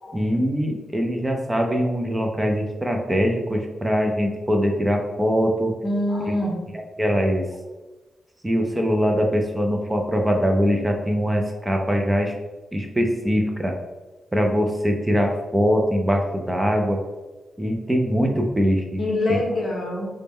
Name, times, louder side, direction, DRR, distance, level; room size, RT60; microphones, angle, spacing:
voice 1, 0.1-5.7 6.3-6.4 6.7-7.5 8.4-12.3 12.7-13.8 14.3-17.0 17.6-19.0 19.3-19.4, equal, 10° right, 2 dB, 0.4 m, -22 dB
voice 2, 5.8-6.6 19.0-20.1, left 1 dB, 45° left, -1 dB, 0.8 m, -24 dB
3.9 x 2.1 x 3.5 m, 1.2 s
wide cardioid pair, 150°, 0 cm